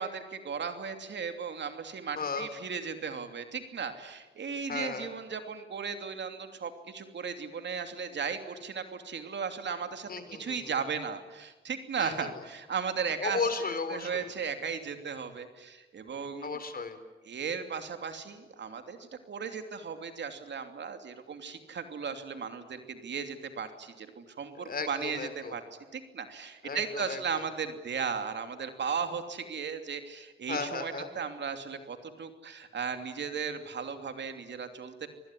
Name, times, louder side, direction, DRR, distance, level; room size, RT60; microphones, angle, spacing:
voice 1, 0.0-10.1 10.4-13.5 13.9-16.6 17.2-25.6 25.9-35.1, right 6 dB, 65° right, 7 dB, 2.9 m, -36 dB
voice 2, 2.1-2.5 4.7-5.1 10.1-10.8 12.0-12.3 13.2-14.3 16.4-17.0 24.6-25.5 26.6-27.4 30.5-31.1, left 4 dB, 50° left, 10 dB, 4.0 m, -35 dB
27.0 x 20.5 x 9.9 m, 1.2 s
cardioid pair, 70°, 20 cm